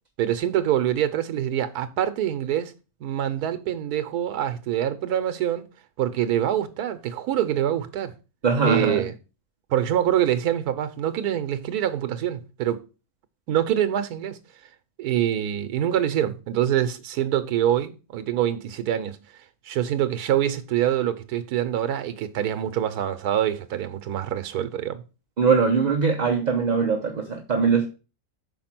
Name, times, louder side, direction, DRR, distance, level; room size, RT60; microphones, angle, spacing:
voice 1, 0.2-2.7 3.0-5.6 6.0-8.1 8.6-9.1 9.7-12.8 13.5-14.4 15.0-19.2 19.7-25.0, right 11 dB, 85° right, 1.3 m, -25 dB
voice 2, 8.4-9.1 25.4-27.9, right 5 dB, 40° right, 0.7 m, -21 dB
5.7 x 4.3 x 5.9 m
omnidirectional pair, 1.6 m